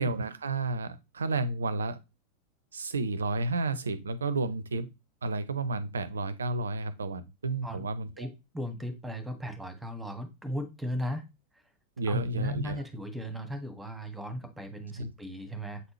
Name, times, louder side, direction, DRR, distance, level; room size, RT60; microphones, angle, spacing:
voice 1, 0.0-2.0 2.7-4.9 5.2-8.3 12.0-12.8 15.0-15.1, right 3 dB, 70° right, 15 dB, 0.7 m, -31 dB
voice 2, 8.5-11.2 12.1-15.8, equal, 5° right, 8 dB, 1.5 m, -36 dB
7.9 x 4.2 x 3.1 m, 0.25 s
figure-of-eight pair, 90°, 0 cm